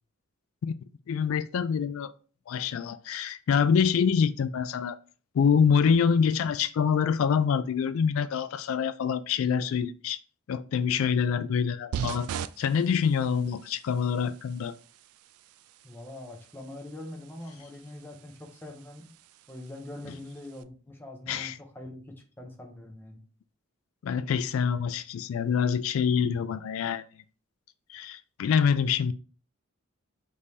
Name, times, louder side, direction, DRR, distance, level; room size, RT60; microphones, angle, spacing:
voice 1, 1.1-2.1 2.5-5.0 5.3-10.2 10.5-12.3 12.6-14.7 21.3-21.5 24.0-27.0 27.9-29.1, left 6 dB, 65° left, 0.3 m, -26 dB
sound 1, 11.9-20.6, right 8 dB, 85° right, 0.3 m, -42 dB
voice 2, 15.8-19.2 19.5-23.2, left 1 dB, 10° left, 0.7 m, -43 dB
5.2 x 3.2 x 2.7 m
head